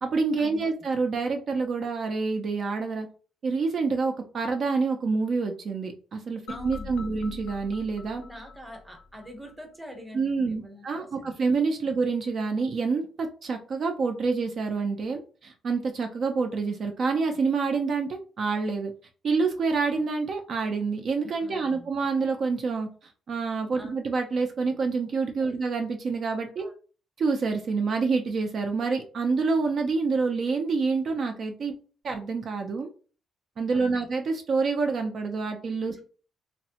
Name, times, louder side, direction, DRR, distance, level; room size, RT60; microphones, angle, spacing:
voice 1, 0.0-3.1 3.4-8.2 10.1-18.9 19.2-26.7 27.2-31.7 32.0-32.9 33.6-36.0, right 4 dB, 50° right, 3 dB, 0.4 m, -27 dB
sound 1, 6.5-9.5, left 4 dB, 70° left, 0.4 m, -43 dB
voice 2, 6.5-7.2 8.2-11.4 11.8-12.0 21.4-22.0 23.7-23.9 25.4-25.5 26.6-26.7 33.7-34.1 35.9-36.0, equal, 5° right, 4 dB, 0.8 m, -45 dB
3.3 x 2.0 x 2.7 m, 0.38 s
cardioid pair, 105°, 0 cm